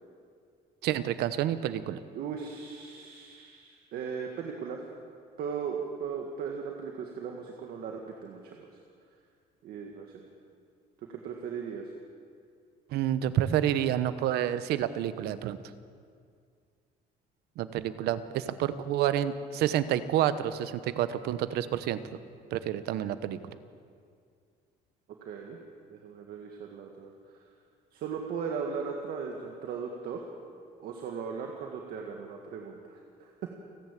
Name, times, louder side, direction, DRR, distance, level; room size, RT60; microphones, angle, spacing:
voice 1, 0.8-2.0 12.9-15.6 17.6-22.0 22.5-23.4, right 11 dB, 85° right, 13 dB, 1.0 m, -29 dB
voice 2, 2.1-4.8 5.4-8.7 9.6-10.2 11.1-11.9 25.2-25.6 25.9-27.1 27.9-30.2 30.8-33.5, right 6 dB, 70° right, 1 dB, 2.0 m, -37 dB
29.5 x 11.0 x 8.5 m, 2.2 s
cardioid pair, 145°, 16 cm